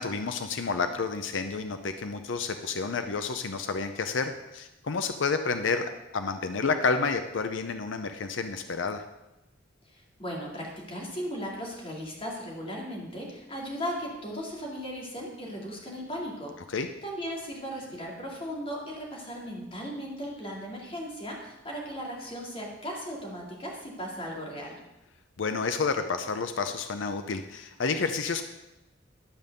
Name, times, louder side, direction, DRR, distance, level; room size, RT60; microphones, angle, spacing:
voice 1, 0.0-9.0 16.7-16.9 25.4-28.4, left 4 dB, 70° left, 8 dB, 0.6 m, -30 dB
voice 2, 9.9-16.5 17.0-24.8, equal, 30° left, -2 dB, 2.5 m, -37 dB
11.5 x 5.3 x 6.6 m, 0.96 s
head